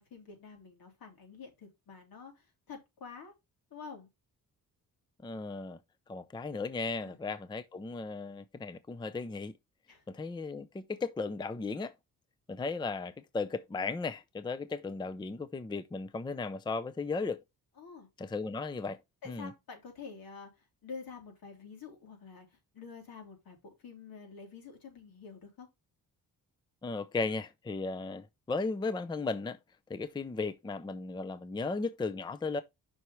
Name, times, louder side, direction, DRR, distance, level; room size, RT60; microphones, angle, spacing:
voice 1, 0.0-3.3 3.7-4.1 6.9-7.2 9.9-10.0 17.8-18.1 19.2-22.5 22.7-25.7, left 5 dB, 75° left, 3.4 m, -48 dB
voice 2, 5.2-5.8 6.1-9.5 10.1-11.9 12.5-17.4 18.2-19.0 19.3-19.5 26.8-29.6 29.9-32.6, left 3 dB, 15° left, 0.5 m, -36 dB
7.7 x 5.6 x 3.1 m
cardioid pair, 135°, 36 cm